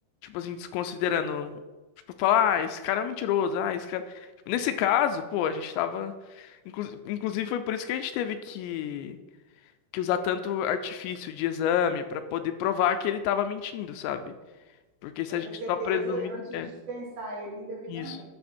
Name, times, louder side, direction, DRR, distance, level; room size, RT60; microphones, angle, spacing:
voice 1, 0.2-1.6 2.2-9.2 9.9-14.3 15.0-16.7 17.9-18.2, left 9 dB, 85° left, 9 dB, 2.8 m, -28 dB
voice 2, 15.3-18.2, right 2 dB, 70° right, -6 dB, 4.2 m, -37 dB
13.0 x 5.0 x 4.4 m, 1.2 s
omnidirectional pair, 5.2 m